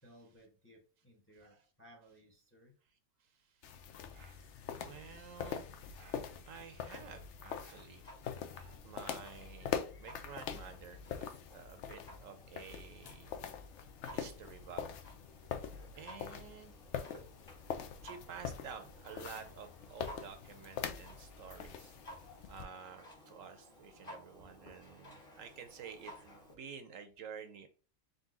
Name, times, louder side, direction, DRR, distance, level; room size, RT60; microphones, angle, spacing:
voice 1, 0.0-2.7 6.3-6.4, equal, 10° left, 1 dB, 0.7 m, -61 dB
sound 1, 3.6-22.6, left 7 dB, 65° left, 0.8 m, -44 dB
voice 2, 4.1-5.7 5.9-8.0 8.5-13.4 14.1-14.9 16.0-16.7 18.0-21.9 22.5-27.7, right 6 dB, 70° right, 8 dB, 1.0 m, -51 dB
Clock, 8.0-26.5, left 1 dB, 40° left, 1.7 m, -56 dB
3.9 x 2.6 x 3.7 m, 0.36 s
omnidirectional pair, 1.5 m